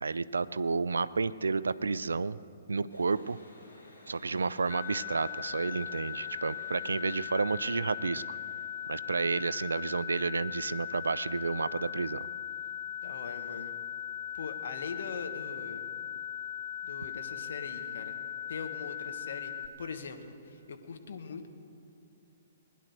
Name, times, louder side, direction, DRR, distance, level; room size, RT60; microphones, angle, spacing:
voice 1, 0.0-2.4 2.7-3.4 4.1-8.4 8.9-12.3, right 4 dB, 70° right, 17 dB, 0.4 m, -31 dB
sound 1, 2.9-10.0, left 1 dB, 80° left, 5.2 m, -55 dB
sound 2, 4.7-19.7, left 9 dB, 40° left, 1.0 m, -39 dB
voice 2, 13.0-13.7 14.3-15.8 16.8-18.1 18.5-19.5 19.8-21.5, left 5 dB, 60° left, 5 dB, 1.4 m, -41 dB
21.0 x 10.5 x 6.5 m, 2.7 s
figure-of-eight pair, 120°, 0 cm